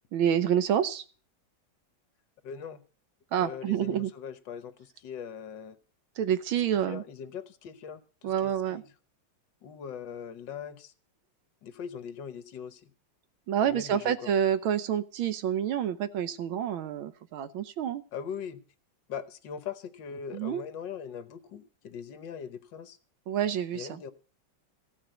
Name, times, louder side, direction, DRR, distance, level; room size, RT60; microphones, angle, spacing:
voice 1, 0.1-1.0 3.3-4.1 6.2-7.0 8.2-8.8 13.5-18.0 20.3-20.6 23.3-24.0, right 9 dB, 90° right, 13 dB, 1.7 m, -28 dB
voice 2, 2.4-2.8 3.4-5.7 6.9-8.8 9.6-10.9 11.6-12.8 13.6-14.3 18.1-18.6 19.1-23.0 23.7-24.1, left 7 dB, 65° left, 12 dB, 1.6 m, -40 dB
15.0 x 6.0 x 8.9 m, 0.40 s
omnidirectional pair, 2.2 m